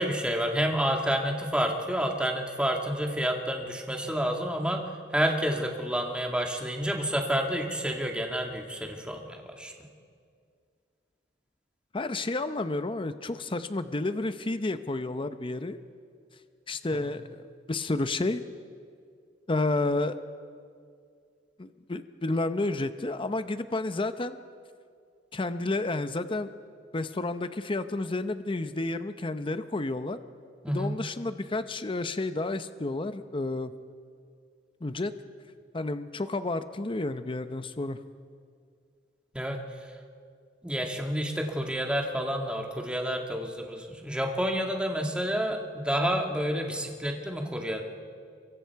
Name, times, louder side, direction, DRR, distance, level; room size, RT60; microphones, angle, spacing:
voice 1, 0.0-4.8 5.1-9.7 30.6-31.0 39.3-39.6 40.6-47.8, equal, 5° right, 2 dB, 1.8 m, -29 dB
voice 2, 11.9-15.8 16.7-17.4 17.7-18.4 19.5-20.2 21.6-24.4 25.3-26.5 26.9-30.2 30.7-33.7 34.8-35.1 35.7-38.0, left 2 dB, 30° left, 11 dB, 0.7 m, -31 dB
28.0 x 23.5 x 4.7 m, 2.2 s
head